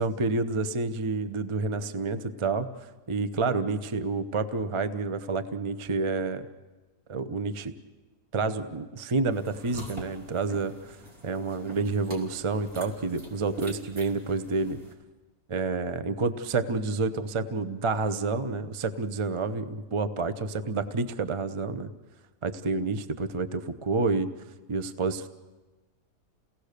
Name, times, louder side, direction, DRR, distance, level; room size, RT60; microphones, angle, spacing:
voice 1, 0.0-2.7 3.1-6.5 7.1-7.7 8.3-11.0 11.2-14.8 15.5-21.9 22.4-24.3 24.7-25.3, right 3 dB, 30° right, 11 dB, 0.5 m, -29 dB
sound 1, 9.3-14.9, right 1 dB, 55° right, 3.7 m, -44 dB
29.5 x 18.0 x 6.7 m, 1.2 s
omnidirectional pair, 1.8 m